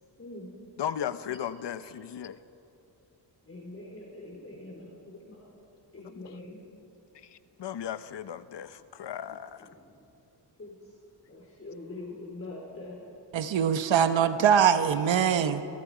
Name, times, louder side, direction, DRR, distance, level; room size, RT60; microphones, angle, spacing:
voice 1, 0.2-0.6 3.5-5.5 5.9-6.7 9.7-9.8 10.6-11.0 11.3-13.1 14.9-15.2, left 2 dB, 30° left, -3 dB, 4.2 m, -44 dB
voice 2, 0.8-2.4 6.0-6.2 7.1-9.7, left 9 dB, 70° left, 13 dB, 0.9 m, -36 dB
voice 3, 13.3-15.6, right 8 dB, 85° right, 9 dB, 1.1 m, -23 dB
29.5 x 23.0 x 5.1 m, 2.8 s
wide cardioid pair, 120°, 44 cm